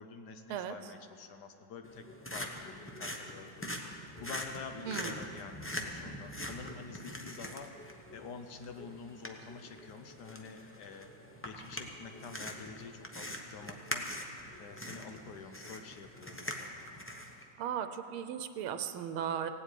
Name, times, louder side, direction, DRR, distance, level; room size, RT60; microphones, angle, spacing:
voice 1, 0.0-2.0 2.3-7.8 8.1-11.1 11.4-14.1 14.6-16.8, left 5 dB, 60° left, 7 dB, 1.3 m, -48 dB
sound 1, 1.8-17.4, equal, 20° left, 0.3 m, -43 dB
voice 2, 4.9-5.2 17.6-19.5, right 9 dB, 90° right, 9 dB, 1.6 m, -36 dB
17.0 x 8.0 x 9.2 m, 2.6 s
omnidirectional pair, 2.3 m